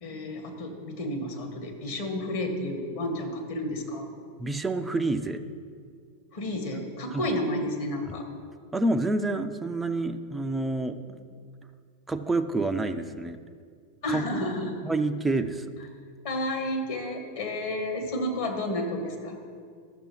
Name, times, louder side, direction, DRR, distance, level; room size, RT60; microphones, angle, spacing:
voice 1, 0.0-4.1 6.3-8.2 14.0-14.8 16.2-19.4, left 1 dB, 55° left, 4 dB, 1.4 m, -31 dB
voice 2, 4.4-5.4 7.1-7.2 8.7-11.0 12.1-13.4 14.1-14.5 14.8-15.7, right 2 dB, 10° right, 7 dB, 0.4 m, -28 dB
13.5 x 6.7 x 3.1 m, 2.1 s
figure-of-eight pair, 90°, 0 cm